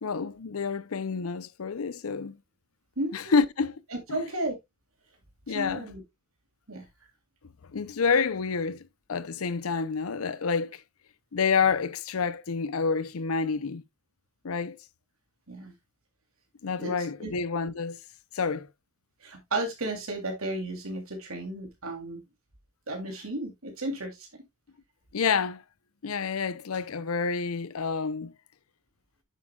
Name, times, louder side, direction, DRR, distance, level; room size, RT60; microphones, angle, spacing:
voice 1, 0.0-2.4 3.1-3.8 4.1-4.2 5.5-5.9 7.7-8.8 9.1-10.8 11.3-13.8 14.4-14.8 16.6-18.0 18.3-18.7 25.1-25.6 26.0-28.3, left 5 dB, 85° left, 0.6 m, -28 dB
voice 2, 3.0-3.3 3.9-4.6 5.5-6.0 6.7-6.8 15.5-15.7 16.8-17.3 19.2-22.2 22.9-24.3, right 1 dB, 80° right, 3.1 m, -33 dB
9.2 x 7.3 x 2.3 m
head